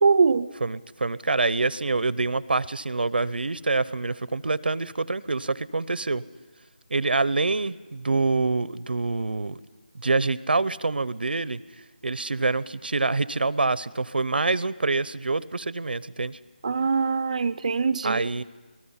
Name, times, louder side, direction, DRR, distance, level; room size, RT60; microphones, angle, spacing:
voice 1, 0.0-0.5 16.6-18.3, right 5 dB, 45° right, 11 dB, 0.6 m, -22 dB
voice 2, 0.6-6.2 6.9-9.6 9.9-11.6 12.0-16.4 18.0-18.4, right 3 dB, 80° right, 19 dB, 0.8 m, -26 dB
27.0 x 19.5 x 5.7 m, 1.3 s
figure-of-eight pair, 170°, 5 cm